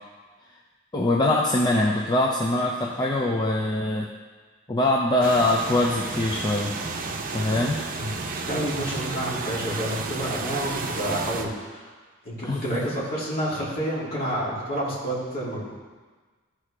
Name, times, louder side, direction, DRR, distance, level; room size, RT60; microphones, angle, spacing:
voice 1, 0.9-4.1 4.7-6.7 7.3-7.8 12.4-12.6, left 1 dB, 20° left, -1 dB, 0.5 m, -23 dB
sound 1, 5.2-11.4, right 3 dB, 40° right, 0.7 m, -32 dB
voice 2, 8.5-11.9 12.2-15.7, right 1 dB, 45° left, -7 dB, 2.8 m, -29 dB
14.0 x 4.8 x 3.3 m, 1.4 s
head